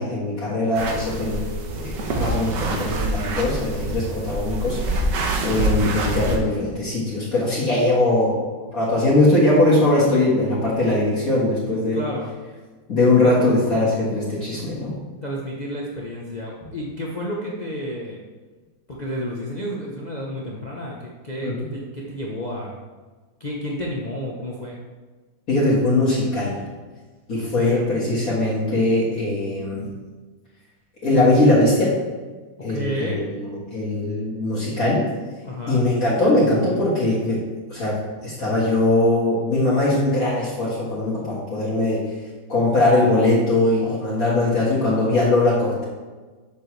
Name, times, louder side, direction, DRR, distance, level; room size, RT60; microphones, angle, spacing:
voice 1, 0.0-1.5 1.7-5.1 5.4-8.4 8.7-12.0 12.9-14.9 21.4-21.5 25.5-26.5 27.3-29.9 31.0-32.0 32.6-35.0 35.7-37.4 37.7-37.9 38.2-42.1 42.5-45.9, left 2 dB, 50° left, -8 dB, 2.0 m, -20 dB
sound 1, 0.7-6.4, right 2 dB, 75° right, 1.5 m, -25 dB
voice 2, 11.9-12.3 13.2-13.3 15.2-18.2 18.9-22.8 23.4-24.8 27.4-27.9 32.6-33.3 35.4-35.8, equal, 75° left, -3 dB, 0.4 m, -31 dB
7.0 x 6.8 x 3.2 m, 1.3 s
omnidirectional pair, 2.0 m